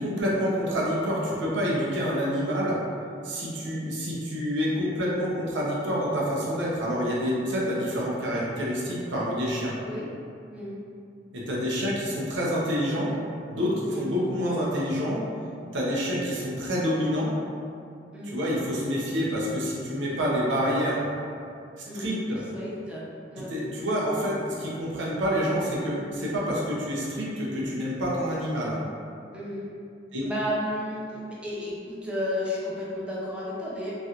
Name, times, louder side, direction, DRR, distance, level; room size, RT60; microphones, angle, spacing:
voice 1, 0.0-2.8 3.2-9.7 11.3-13.1 13.5-15.2 15.7-17.3 18.3-21.0 21.9-22.4 23.4-28.8 30.1-30.3, equal, 75° right, -5 dB, 0.7 m, -27 dB
voice 2, 10.5-10.8 13.9-14.1 18.1-18.4 21.8-22.1 22.5-23.0 23.3-23.5 29.3-29.7 30.2-33.9, left 1 dB, 5° right, -7 dB, 0.5 m, -32 dB
3.1 x 2.4 x 2.8 m, 2.5 s
head